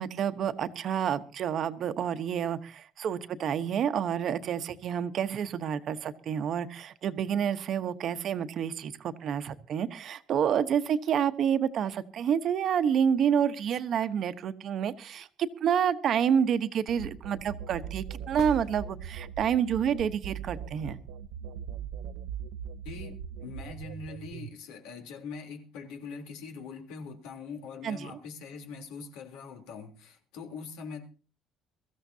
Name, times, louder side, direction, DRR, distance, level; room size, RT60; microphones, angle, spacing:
voice 1, 0.0-21.0 27.8-28.1, right 8 dB, 40° right, 1.0 m, -29 dB
sound 1, 16.9-24.5, right 8 dB, 85° right, 0.7 m, -40 dB
sound 2, 18.3-19.5 23.4-23.5, left 7 dB, 65° left, 1.4 m, -45 dB
voice 2, 22.8-31.1, left 5 dB, 90° left, 3.4 m, -42 dB
23.0 x 14.5 x 2.8 m
cardioid pair, 160°, 0 cm